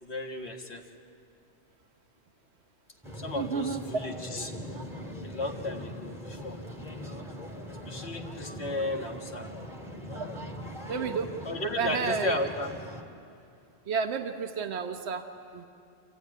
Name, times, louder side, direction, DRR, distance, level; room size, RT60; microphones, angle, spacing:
voice 1, 0.0-0.8 3.2-4.5 5.2-6.6 7.9-9.4 11.4-12.7, left 1 dB, 55° left, 2 dB, 1.9 m, -34 dB
sound 1, 3.0-13.0, left 1 dB, ahead, 2.0 m, -41 dB
voice 2, 3.3-3.8 10.9-11.3 11.8-12.4 13.9-15.2 15.5-15.6, right 6 dB, 60° right, 6 dB, 1.4 m, -31 dB
28.0 x 15.0 x 9.5 m, 2.5 s
omnidirectional pair, 1.3 m